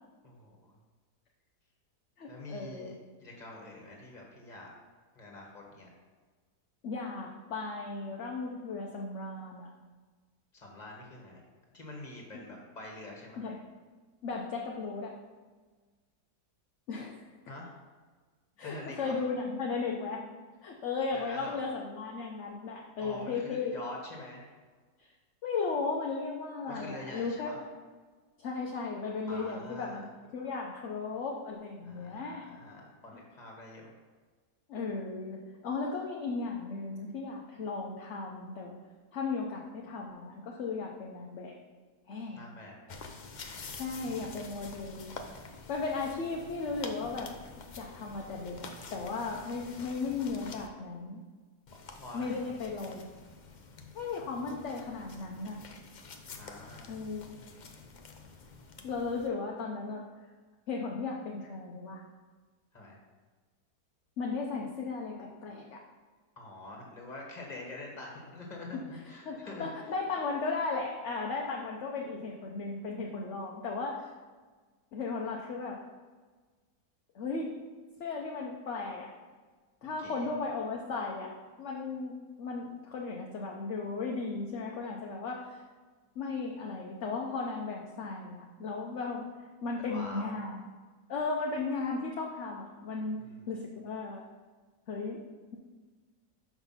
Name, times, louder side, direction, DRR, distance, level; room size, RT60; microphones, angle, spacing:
voice 1, 0.2-0.7 2.3-2.9 3.2-4.7 5.1-5.9 10.5-11.4 11.7-13.4 17.5-17.8 18.6-19.1 21.1-21.6 23.0-24.5 26.7-27.6 29.3-30.0 31.8-33.9 42.3-42.8 43.8-44.3 51.9-52.5 56.3-56.9 62.7-63.0 66.4-69.7 79.8-80.3 89.8-90.4 93.2-93.4, left 2 dB, 25° left, -1 dB, 1.6 m, -45 dB
voice 2, 2.2-3.0 6.8-9.7 13.4-13.6 14.2-15.1 16.9-17.2 18.6-20.3 20.6-23.7 25.0-25.1 25.4-27.5 28.4-30.0 30.3-32.5 34.7-38.8 39.1-41.6 42.1-42.5 43.7-45.1 45.7-47.3 47.7-51.2 52.1-53.1 53.9-55.6 56.9-57.2 58.8-60.0 60.7-62.0 64.2-65.8 68.7-68.8 69.3-74.1 74.9-75.8 77.1-77.5 78.0-79.1 79.8-81.3 81.6-85.6 86.2-89.3 89.6-90.6 91.1-94.2 94.9-95.2, left 4 dB, 55° left, -1 dB, 0.9 m, -36 dB
sound 1, 42.9-50.7 51.7-59.3, left 4 dB, 80° left, 0.4 m, -48 dB
6.0 x 5.9 x 5.6 m, 1.4 s
omnidirectional pair, 1.8 m